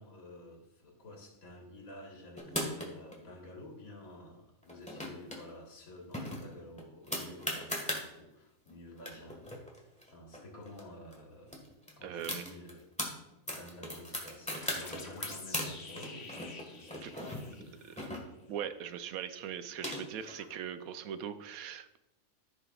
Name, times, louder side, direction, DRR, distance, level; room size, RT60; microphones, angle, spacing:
voice 1, 0.0-9.5 10.1-11.6 12.0-12.9 13.5-18.1 20.4-20.5, left 1 dB, 85° left, 0 dB, 2.0 m, -51 dB
sound 1, 2.4-3.1 4.6-5.4 5.7-5.8 6.1-8.0 8.7-8.8 9.0-10.8 11.1-11.2 11.5-13.1 13.5-15.7 16.0-18.6 19.4-20.3, left 1 dB, 5° left, 1.4 m, -38 dB
voice 2, 12.0-12.5 14.5-14.8 17.0-17.1 17.8-18.0 18.5-22.0, right 9 dB, 85° right, 11 dB, 1.0 m, -41 dB
sound 2, 14.6-18.1, left 3 dB, 50° left, 1.3 m, -49 dB
14.5 x 5.7 x 2.4 m, 0.92 s
omnidirectional pair, 1.4 m